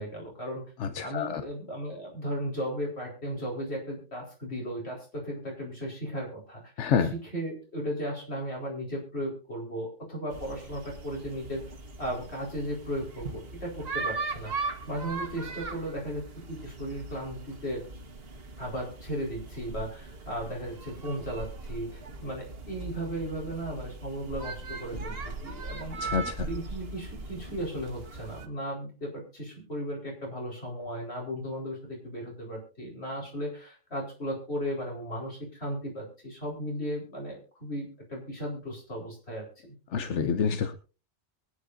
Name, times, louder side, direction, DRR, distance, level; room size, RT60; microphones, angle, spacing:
voice 1, 0.0-0.6 1.0-11.6 12.0-14.5 14.9-17.8 18.6-26.0 26.4-39.8, equal, 65° left, -1 dB, 4.8 m, -36 dB
voice 2, 0.8-1.4 6.8-7.1 26.0-26.5 39.9-40.7, left 6 dB, 90° left, 9 dB, 1.1 m, -27 dB
sound 1, 10.3-28.5, right 3 dB, 60° right, 1.5 m, -39 dB
23.5 x 9.5 x 2.6 m, 0.33 s
omnidirectional pair, 1.2 m